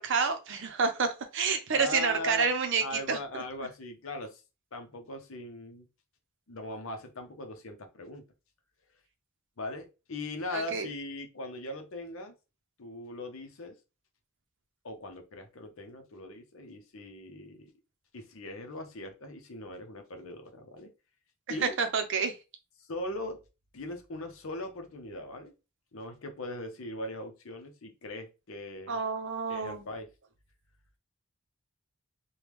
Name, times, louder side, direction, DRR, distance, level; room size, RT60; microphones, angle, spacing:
voice 1, 0.0-3.4 10.5-10.9 21.5-22.3 28.9-29.8, right 5 dB, 55° right, 0.6 m, -29 dB
voice 2, 1.7-2.5 2.8-4.4 4.7-5.8 6.5-8.2 9.6-12.3 12.8-13.8 14.8-17.7 18.1-20.9 21.5-21.8 22.8-23.4 23.7-25.5 25.9-29.0 29.5-30.1, left 2 dB, 60° left, 0.7 m, -40 dB
3.5 x 2.2 x 3.0 m
head